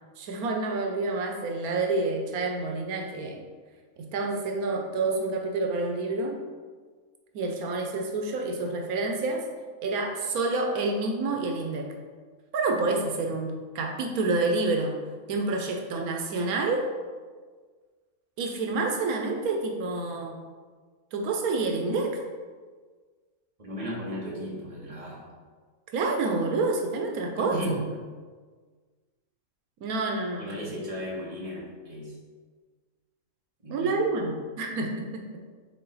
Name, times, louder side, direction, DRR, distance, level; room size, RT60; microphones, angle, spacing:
voice 1, 0.2-3.4 4.0-6.4 7.3-9.4 9.8-11.9 12.5-15.0 15.3-16.8 18.4-20.4 21.1-22.2 25.9-27.6 29.8-30.8 33.7-35.4, right 3 dB, 85° right, 2 dB, 1.2 m, -28 dB
voice 2, 23.6-25.3 27.4-27.8 30.4-32.2 33.6-34.0, equal, 25° right, -5 dB, 1.5 m, -35 dB
6.6 x 3.7 x 4.0 m, 1.5 s
omnidirectional pair, 1.5 m